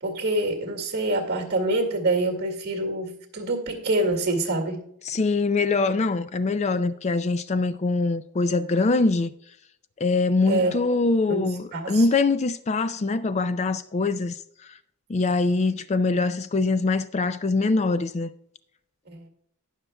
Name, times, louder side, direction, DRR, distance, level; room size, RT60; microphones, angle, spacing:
voice 1, 0.0-4.8 10.5-10.7 11.3-11.5 11.7-12.0 19.1-19.2, right 2 dB, 50° right, 2.1 m, -26 dB
voice 2, 5.0-9.3 10.0-14.4 15.1-18.3, left 3 dB, 30° left, 0.4 m, -23 dB
19.0 x 6.6 x 2.2 m
head